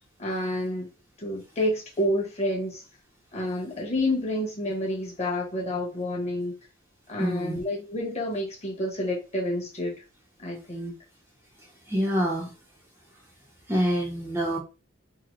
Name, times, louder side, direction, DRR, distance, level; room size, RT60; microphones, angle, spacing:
voice 1, 0.2-0.9 1.2-2.8 3.3-6.5 7.1-9.9 10.4-10.9, left 1 dB, 30° left, 1.2 m, -29 dB
voice 2, 7.2-7.6 11.9-12.5 13.7-14.6, equal, 10° right, 0.7 m, -26 dB
3.8 x 2.1 x 3.1 m
head